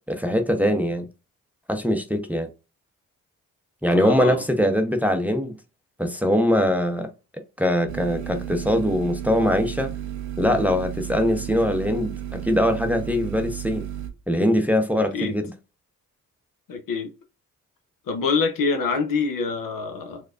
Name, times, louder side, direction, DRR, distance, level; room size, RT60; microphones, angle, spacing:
voice 1, 0.1-1.1 1.7-2.5 3.8-5.5 6.0-7.1 7.6-9.9 10.4-13.8 14.3-15.4, left 1 dB, 5° right, 0.7 m, -22 dB
voice 2, 3.9-4.4 14.9-15.4 16.7-17.1 18.1-20.2, left 4 dB, 60° left, 0.9 m, -25 dB
sound 1, 7.9-14.1, right 11 dB, 90° right, 0.6 m, -33 dB
4.6 x 2.2 x 2.4 m
supercardioid pair, 45°, 37 cm